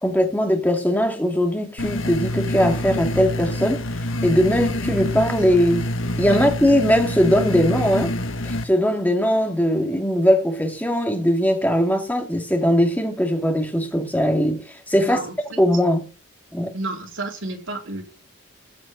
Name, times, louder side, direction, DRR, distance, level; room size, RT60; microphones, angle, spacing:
voice 1, 0.0-3.8 4.2-5.9 6.2-8.1 8.4-15.2 15.6-16.0 16.5-16.7, equal, 10° left, 2.4 m, -20 dB
sound 1, 1.8-8.6, left 1 dB, 70° left, 1.4 m, -26 dB
voice 2, 14.9-15.6 16.7-18.0, right 2 dB, 60° right, 4.1 m, -31 dB
15.0 x 6.0 x 9.1 m
head